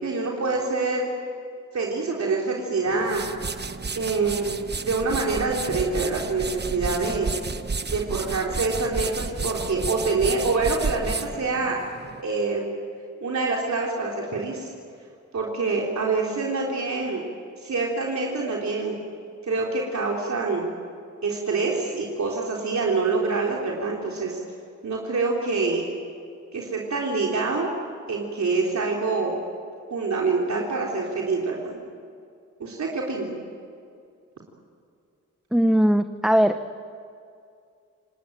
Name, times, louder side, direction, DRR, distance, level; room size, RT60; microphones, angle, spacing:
voice 1, 0.0-1.1 1.7-3.2 4.0-7.3 7.9-11.8 12.2-12.7 13.2-14.7 15.3-17.2 17.6-19.0 19.4-20.7 21.2-24.4 24.8-25.8 26.5-27.7 28.1-29.4 29.9-31.8 32.6-33.3, right 3 dB, 65° right, -2 dB, 3.8 m, -26 dB
sound 1, 2.8-12.2, right 4 dB, 35° right, 1.2 m, -32 dB
voice 2, 35.5-36.8, equal, ahead, 8 dB, 1.0 m, -20 dB
28.5 x 19.5 x 9.1 m, 2.4 s
cardioid pair, 65°, 30 cm